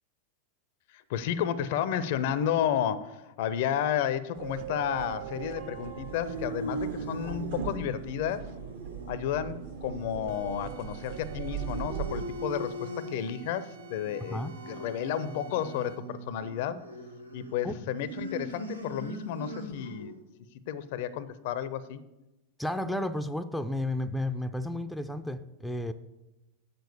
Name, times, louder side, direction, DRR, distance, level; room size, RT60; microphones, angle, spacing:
voice 1, 0.9-8.5 9.1-16.9 17.3-20.2 20.7-22.0, left 9 dB, 50° left, 16 dB, 0.5 m, -32 dB
sound 1, 4.4-12.2, right 8 dB, 55° right, 1.0 m, -39 dB
sound 2, 5.7-20.2, right 1 dB, 85° right, 1.2 m, -41 dB
sound 3, 10.3-16.2, right 10 dB, 70° right, 1.6 m, -53 dB
voice 2, 22.6-25.9, left 1 dB, ahead, 8 dB, 0.5 m, -32 dB
7.6 x 6.9 x 6.9 m, 0.99 s
figure-of-eight pair, 90°, 0 cm